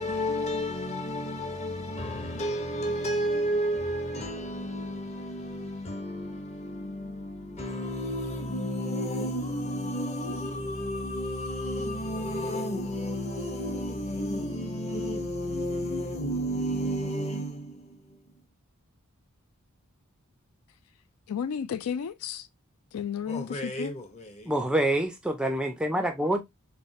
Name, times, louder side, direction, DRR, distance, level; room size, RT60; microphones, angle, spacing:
voice 1, 0.0-18.0 23.3-24.5, equal, 30° left, 0.8 m, -32 dB
voice 2, 21.3-22.5 22.9-23.9, left 7 dB, 85° left, 0.4 m, -33 dB
voice 3, 24.5-26.4, right 1 dB, 5° right, 0.3 m, -26 dB
3.3 x 3.1 x 2.7 m
head